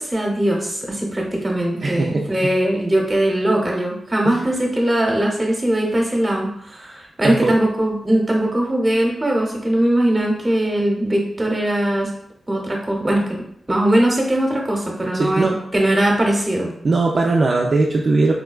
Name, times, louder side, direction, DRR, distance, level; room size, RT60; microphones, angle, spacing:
voice 1, 0.0-12.1 12.5-13.4 13.7-16.7, right 1 dB, 25° right, -1 dB, 0.8 m, -20 dB
voice 2, 1.8-2.5 4.2-4.5 7.2-7.6 15.1-15.5 16.8-18.3, right 3 dB, 50° right, -1 dB, 0.3 m, -19 dB
4.3 x 2.2 x 2.3 m, 0.70 s
wide cardioid pair, 105°, 0 cm